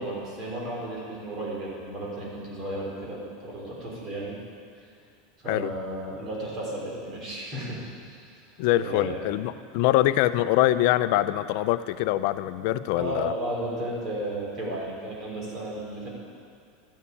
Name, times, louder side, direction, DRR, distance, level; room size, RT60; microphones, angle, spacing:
voice 1, 0.0-4.4 5.4-7.8 8.1-8.2 8.8-9.2 12.9-16.1, right 1 dB, 30° right, -4 dB, 3.9 m, -33 dB
voice 2, 8.6-13.3, left 14 dB, 60° left, 14 dB, 0.5 m, -24 dB
12.0 x 7.3 x 8.5 m, 2.4 s
supercardioid pair, 145°, 0 cm